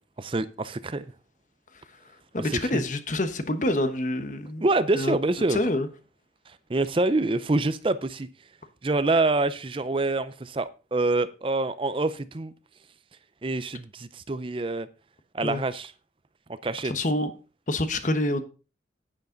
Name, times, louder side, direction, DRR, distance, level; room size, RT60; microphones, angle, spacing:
voice 1, 0.2-1.1 2.4-2.8 4.6-5.6 6.5-8.3 8.8-12.5 13.4-14.9 15.3-15.9 16.6-16.9, right 2 dB, 30° right, 0.5 m, -26 dB
voice 2, 2.3-4.6 4.9-5.2 5.5-5.9 15.4-15.6 16.8-17.3 17.7-18.4, left 1 dB, 45° left, 1.2 m, -27 dB
10.5 x 9.5 x 3.9 m
head